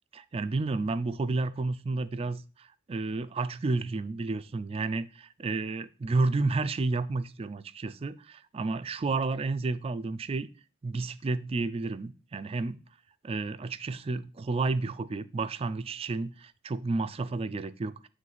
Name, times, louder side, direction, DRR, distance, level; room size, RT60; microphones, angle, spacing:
voice 1, 0.1-10.5 10.8-12.8 13.2-18.1, right 3 dB, 30° right, 13 dB, 0.3 m, -31 dB
9.0 x 3.2 x 3.9 m, 0.35 s
head